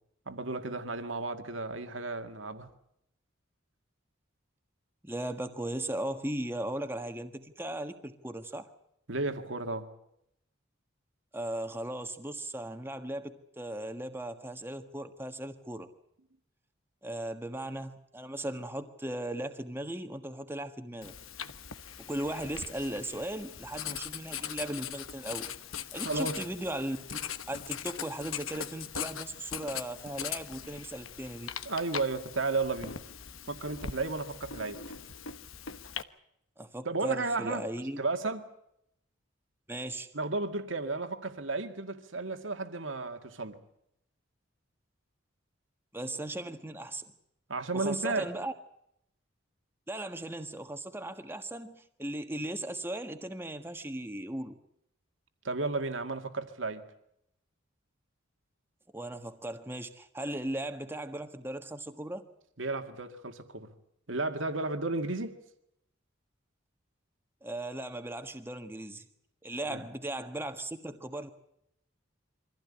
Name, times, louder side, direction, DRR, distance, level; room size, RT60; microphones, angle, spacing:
voice 1, 0.3-2.7 9.1-9.9 26.0-26.4 31.7-33.0 33.5-34.8 36.9-37.6 38.0-38.5 40.1-43.6 47.5-48.3 55.4-56.8 62.6-63.7 64.1-65.4 69.7-69.8, right 3 dB, 70° right, 2.1 m, -33 dB
voice 2, 5.0-8.7 11.3-15.9 17.0-21.1 22.0-25.5 25.9-27.2 27.5-31.5 36.6-38.0 39.7-40.1 45.9-47.0 47.7-48.5 49.9-54.6 58.9-62.2 67.4-69.0 69.4-71.3, right 1 dB, 10° right, 1.5 m, -37 dB
Writing, 21.0-36.0, left 8 dB, 90° left, 1.2 m, -41 dB
24.5 x 15.5 x 9.9 m
head